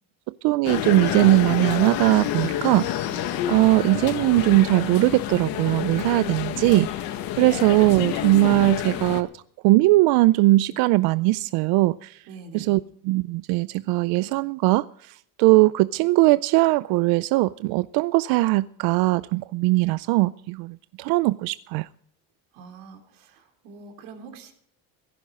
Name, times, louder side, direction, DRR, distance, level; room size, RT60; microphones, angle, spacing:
voice 1, 0.4-3.0 3.5-7.1 7.4-12.2 12.5-21.9, right 20 dB, 65° right, 0.5 m, -20 dB
sound 1, 0.6-9.2, left 11 dB, 60° left, 1.6 m, -28 dB
voice 2, 12.3-12.8 22.5-24.5, right 4 dB, 90° right, 3.9 m, -44 dB
17.0 x 14.5 x 3.7 m
cardioid pair, 165°, 40 cm